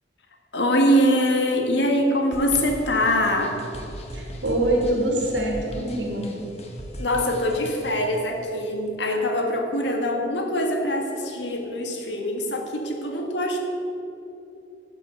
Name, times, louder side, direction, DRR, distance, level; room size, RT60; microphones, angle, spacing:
voice 1, 0.5-3.6 7.0-13.6, equal, 75° left, 2 dB, 1.7 m, -23 dB
sound 1, 2.3-8.2, equal, 35° left, 1.3 m, -38 dB
voice 2, 4.1-6.3, right 1 dB, 90° right, -1 dB, 2.8 m, -24 dB
12.5 x 5.9 x 8.2 m, 2.9 s
head